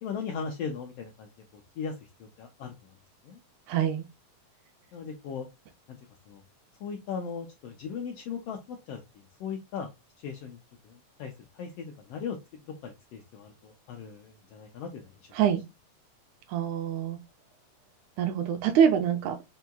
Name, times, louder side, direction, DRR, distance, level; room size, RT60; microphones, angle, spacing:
voice 1, 0.0-2.9 3.2-3.4 4.9-5.5 5.9-6.0 6.3-6.4 6.8-9.9 10.2-10.6 10.8-12.4 12.7-15.1, left 6 dB, 80° left, 1.4 m, -38 dB
voice 2, 3.7-4.0 15.4-15.6 16.5-17.2 18.2-19.4, right 8 dB, 80° right, 1.9 m, -25 dB
6.0 x 2.8 x 2.3 m
omnidirectional pair, 3.4 m